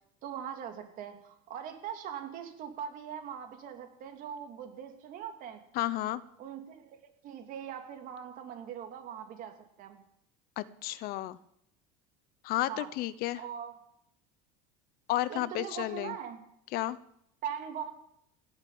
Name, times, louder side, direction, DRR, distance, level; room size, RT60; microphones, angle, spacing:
voice 1, 0.2-5.6 6.4-10.0 12.7-12.9 13.3-13.8 15.3-16.4 17.4-17.9, right 8 dB, 45° right, 4 dB, 3.0 m, -41 dB
voice 2, 5.7-6.2 10.6-11.4 12.4-13.4 15.1-16.1 16.7-17.0, left 15 dB, 55° left, 17 dB, 0.8 m, -32 dB
17.0 x 8.0 x 8.7 m, 0.74 s
supercardioid pair, 135°, 19 cm